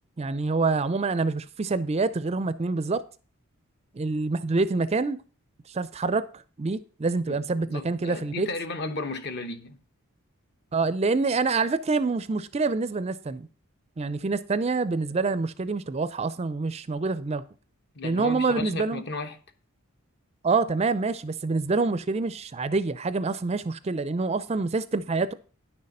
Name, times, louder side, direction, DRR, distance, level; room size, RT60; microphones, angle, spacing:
voice 1, 0.2-3.0 3.9-5.2 5.7-6.3 6.6-8.5 10.7-13.5 14.0-17.4 18.0-19.0 20.4-25.3, right 3 dB, 30° right, 0.4 m, -26 dB
voice 2, 7.3-9.8 17.9-19.4, left 2 dB, 50° left, 1.1 m, -34 dB
10.0 x 6.5 x 5.4 m
head